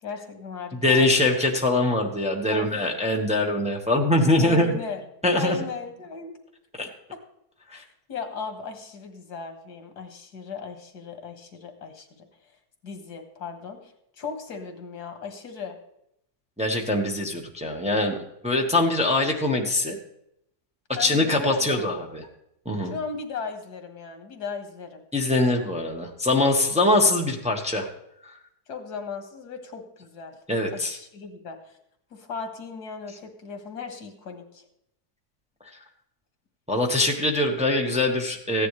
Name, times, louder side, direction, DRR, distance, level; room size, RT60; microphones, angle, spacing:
voice 1, 0.0-1.3 2.5-2.7 4.4-5.0 5.3-6.4 7.7-12.3 12.8-15.8 20.9-21.9 22.8-25.0 28.7-30.3 30.7-31.8 32.1-34.7, left 5 dB, 85° left, 5 dB, 2.0 m, -37 dB
voice 2, 0.8-4.8 5.2-5.6 6.8-6.9 7.7-7.8 16.6-18.2 18.4-20.0 21.0-22.3 22.6-22.9 25.1-27.9 28.2-28.3 30.5-31.0 35.6-35.8 36.7-38.7, left 2 dB, 5° right, 1 dB, 1.1 m, -23 dB
15.0 x 10.0 x 3.2 m, 0.78 s
omnidirectional pair, 1.7 m